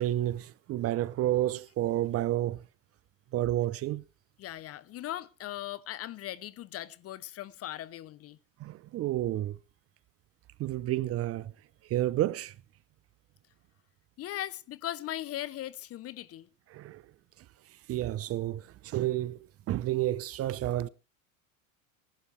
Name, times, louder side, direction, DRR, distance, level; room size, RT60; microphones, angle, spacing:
voice 1, 0.0-2.7 3.3-4.0 8.6-9.6 10.6-11.5 11.8-12.5 16.7-17.0 17.7-19.4 19.7-20.9, right 14 dB, 35° right, 0.7 m, -30 dB
voice 2, 4.4-8.4 14.2-16.5, left 13 dB, 35° left, 0.8 m, -39 dB
20.5 x 11.5 x 3.4 m
hypercardioid pair, 105°, 41 cm